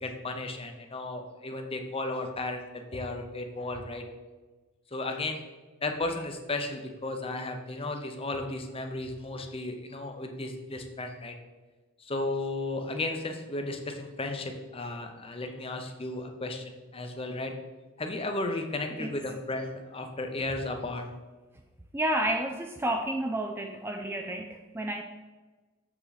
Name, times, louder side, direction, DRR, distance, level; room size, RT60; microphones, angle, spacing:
voice 1, 0.0-4.0 4.9-5.4 5.8-11.3 12.0-17.6 18.0-21.0, left 2 dB, 25° left, 5 dB, 0.7 m, -34 dB
voice 2, 21.9-25.0, right 1 dB, 10° right, 4 dB, 0.3 m, -30 dB
6.9 x 5.8 x 4.0 m, 1.3 s
head